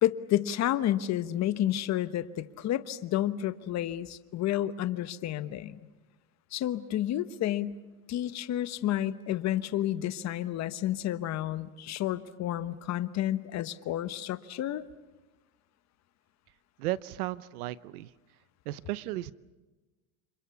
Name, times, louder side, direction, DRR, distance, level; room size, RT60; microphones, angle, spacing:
voice 1, 0.0-5.8 6.5-7.8 8.1-14.8, left 12 dB, 40° left, 12 dB, 1.2 m, -30 dB
voice 2, 16.8-18.1 18.7-19.3, right 16 dB, 90° right, 18 dB, 0.9 m, -34 dB
29.5 x 26.5 x 7.0 m, 1.2 s
supercardioid pair, 135°, 43 cm